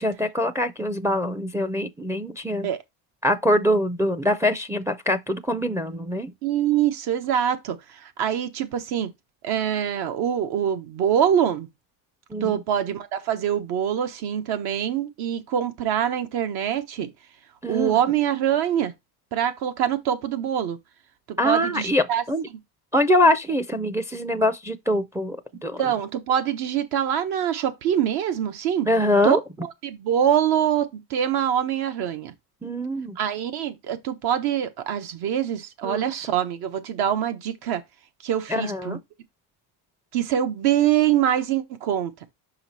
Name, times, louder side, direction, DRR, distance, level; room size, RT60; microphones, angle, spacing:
voice 1, 0.0-2.7 3.2-6.3 12.3-12.6 17.6-17.9 21.4-22.5 22.9-25.8 28.9-29.4 32.6-33.2 35.8-36.1 38.5-39.0, left 1 dB, 5° right, 0.4 m, -23 dB
voice 2, 6.4-9.1 9.4-11.7 12.4-17.1 17.7-18.9 19.3-20.8 21.4-22.2 25.8-28.9 29.2-29.4 29.8-32.3 33.2-37.8 38.2-39.0 40.1-42.1, right 10 dB, 70° right, 1.3 m, -24 dB
5.7 x 5.0 x 4.1 m
cardioid pair, 140°, 39 cm